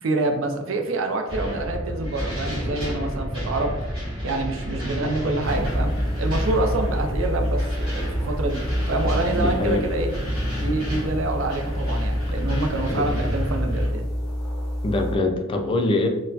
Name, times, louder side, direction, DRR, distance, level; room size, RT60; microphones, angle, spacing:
voice 1, 0.0-3.7 4.2-8.6 8.9-10.1 10.5-14.1, right 2 dB, 80° right, 4 dB, 0.5 m, -27 dB
sound 1, 1.3-13.9, equal, 25° right, 1.5 m, -29 dB
sound 2, 5.4-15.1, equal, 5° left, 1.1 m, -29 dB
voice 2, 9.3-9.9 12.9-13.1 14.8-16.1, left 2 dB, 25° left, 4 dB, 0.3 m, -23 dB
4.0 x 2.1 x 2.7 m, 1.1 s
head